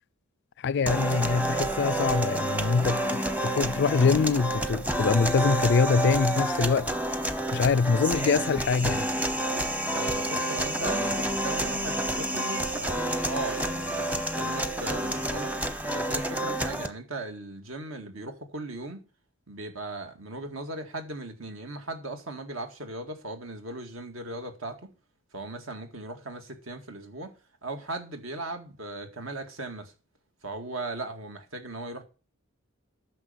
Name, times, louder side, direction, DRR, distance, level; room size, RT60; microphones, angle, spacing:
voice 1, 0.6-6.9 7.5-9.1, left 5 dB, 55° left, 0.4 m, -24 dB
sound 1, 0.9-16.9, right 1 dB, 10° right, 0.8 m, -29 dB
voice 2, 9.9-15.5 15.9-19.0 19.5-24.9 25.3-27.3 27.6-29.9 30.4-32.0, right 2 dB, 70° right, 2.1 m, -38 dB
9.8 x 6.3 x 6.9 m
head